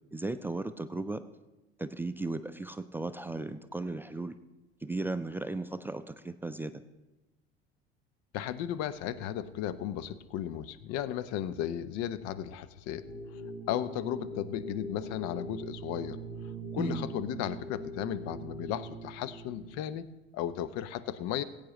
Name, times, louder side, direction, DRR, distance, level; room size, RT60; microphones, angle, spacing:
voice 1, 0.1-1.2 1.8-4.3 4.8-6.8 16.8-17.1, right 2 dB, 5° right, 10 dB, 0.5 m, -36 dB
voice 2, 8.3-13.0 13.7-16.2 16.7-20.1 20.3-21.4, left 11 dB, 50° left, 14 dB, 0.8 m, -35 dB
sound 1, 13.0-19.8, right 2 dB, 75° left, 2.2 m, -42 dB
21.0 x 8.8 x 3.1 m, 1.1 s
figure-of-eight pair, 70°, 31 cm